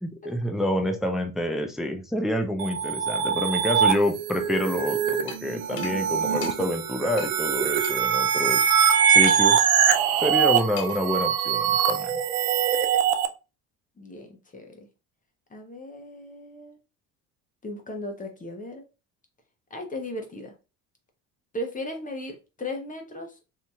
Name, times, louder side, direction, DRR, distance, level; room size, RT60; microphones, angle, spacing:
voice 1, 0.0-8.7 9.1-9.7 10.2-12.2, left 1 dB, ahead, 4 dB, 0.4 m, -28 dB
sound 1, 2.6-13.3, right 8 dB, 80° right, 0.5 m, -23 dB
sound 2, 5.3-5.4 5.8-5.9 6.4-6.5 7.2-7.3 7.8-7.9 9.3-9.7 10.8-11.1, left 7 dB, 55° left, 0.6 m, -38 dB
voice 2, 5.5-6.2 14.0-14.9 15.5-16.8 17.6-18.8 19.7-20.5 21.5-23.4, left 1 dB, 20° left, 4 dB, 0.8 m, -37 dB
2.8 x 2.7 x 2.3 m, 0.30 s
hypercardioid pair, 70°, 44 cm